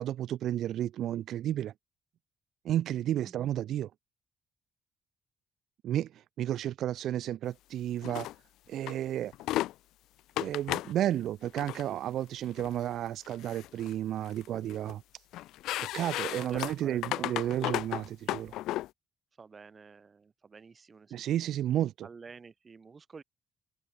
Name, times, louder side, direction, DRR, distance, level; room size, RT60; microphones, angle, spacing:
voice 1, 0.0-1.7 2.6-3.9 5.8-8.3 8.7-9.3 10.4-15.0 15.9-18.5 21.1-22.1, right 12 dB, 75° right, 0.6 m, -32 dB
voice 2, 3.2-3.5 16.3-17.9 19.4-21.6 22.0-23.2, right 5 dB, 35° right, 4.2 m, -50 dB
sound 1, 8.0-8.3 8.9-9.0 9.3-9.7 10.4-10.9 11.5-11.8 12.6-12.8 13.2-13.9 14.2-14.9 15.3-18.9, left 15 dB, 90° left, 1.1 m, -34 dB
cardioid pair, 90°, 0 cm